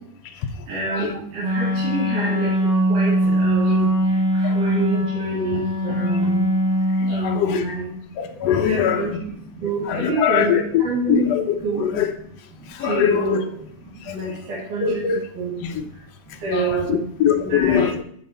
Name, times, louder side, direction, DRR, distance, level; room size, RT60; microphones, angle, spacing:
voice 1, 0.7-2.5 2.9-3.9 4.6-6.5 7.1-7.9 8.7-9.1 9.6-11.3 11.6-11.8 12.8-13.4 14.1-15.0 15.4-15.5 16.4-17.0 17.4-17.9, right 3 dB, 85° right, -7 dB, 3.9 m, -26 dB
Wind instrument woodwind instrument, 1.4-7.5, equal, 65° right, 6.1 m, -21 dB
voice 2, 7.2-7.6 8.2-9.1 9.9-10.8 11.1-11.6 11.8-12.1 12.8-13.4 14.8-15.2 15.6-15.7 16.5-18.0, left 9 dB, 70° left, 5 dB, 1.7 m, -21 dB
10.5 x 7.5 x 4.3 m, 0.65 s
omnidirectional pair, 3.5 m